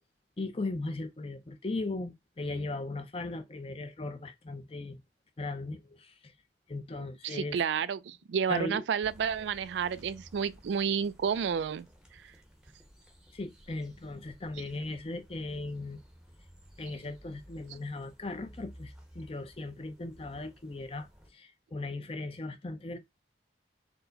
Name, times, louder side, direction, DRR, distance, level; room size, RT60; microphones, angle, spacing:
voice 1, 0.4-5.0 5.4-6.3 6.7-7.6 8.5-8.8 13.3-16.0 16.8-23.0, left 2 dB, 30° left, 0.5 m, -38 dB
voice 2, 7.2-11.9, right 7 dB, 75° right, 0.3 m, -30 dB
sound 1, 9.0-21.3, equal, 5° right, 0.7 m, -56 dB
4.6 x 2.1 x 3.9 m
head